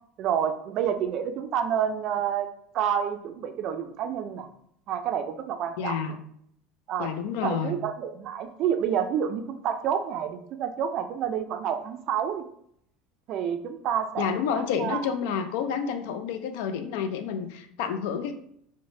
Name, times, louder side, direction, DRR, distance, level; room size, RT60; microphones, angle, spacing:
voice 1, 0.2-2.5 2.7-4.5 4.9-6.1 6.9-7.1 7.4-12.4 13.3-15.1, right 8 dB, 55° right, 8 dB, 0.3 m, -29 dB
voice 2, 5.8-6.2 7.0-7.8 14.2-18.3, left 7 dB, 80° left, 8 dB, 0.3 m, -29 dB
3.1 x 2.0 x 2.6 m, 0.70 s
supercardioid pair, 115°, 0 cm